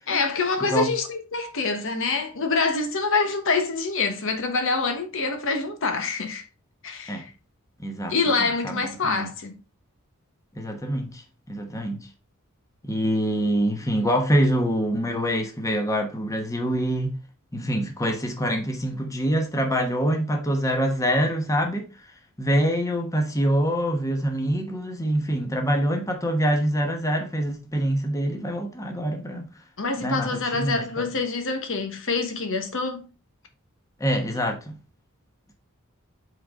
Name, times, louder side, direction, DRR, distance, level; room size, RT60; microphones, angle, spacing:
voice 1, 0.1-6.4 6.8-7.3 8.1-9.5 29.8-33.1, left 4 dB, 65° left, 1.1 m, -26 dB
voice 2, 7.8-8.3 8.6-9.3 10.5-12.1 12.8-17.1 17.5-22.1 22.4-29.5 30.0-31.1 34.0-34.7, equal, 15° left, 1.1 m, -25 dB
7.8 x 3.9 x 3.7 m
head